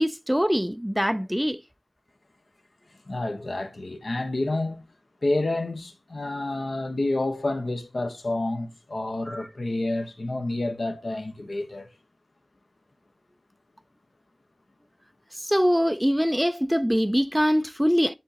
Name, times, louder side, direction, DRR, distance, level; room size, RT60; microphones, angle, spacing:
voice 1, 0.0-1.6 9.3-9.4 15.4-18.1, equal, 5° right, 0.4 m, -23 dB
voice 2, 3.1-4.8 5.2-11.9, left 2 dB, 75° left, 1.1 m, -29 dB
10.0 x 3.6 x 2.9 m
wide cardioid pair, 60°, 0 cm